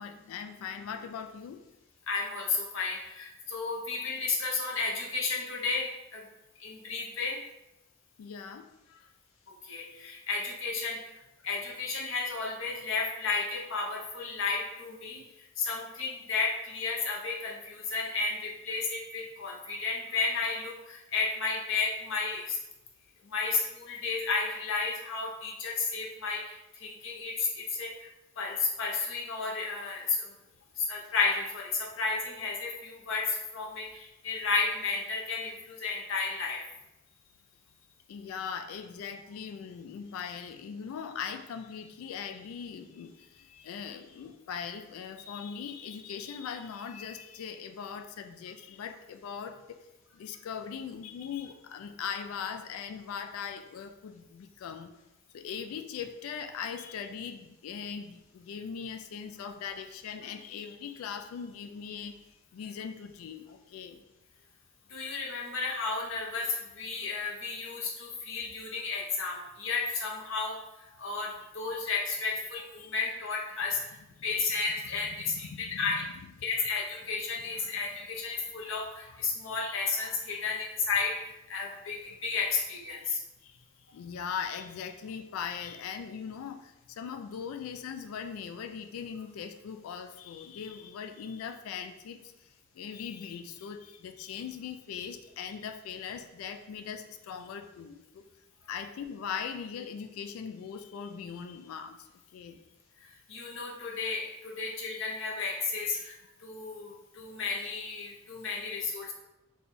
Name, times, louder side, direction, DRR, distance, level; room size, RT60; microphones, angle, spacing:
voice 1, 0.0-1.6 8.2-9.1 38.1-49.6 50.1-54.9 55.3-62.1 62.5-64.0 75.5-75.9 83.1-83.6 83.9-92.2 92.8-98.2 98.7-102.0 102.3-102.6, left 7 dB, 85° left, 8 dB, 0.3 m, -40 dB
voice 2, 2.1-6.3 6.6-7.4 9.6-11.0 11.4-22.6 23.2-28.1 28.4-30.3 30.8-36.6 64.9-76.0 76.4-83.2 103.0-109.1, left 4 dB, 65° left, -2 dB, 0.7 m, -33 dB
3.3 x 2.3 x 4.0 m, 0.95 s
head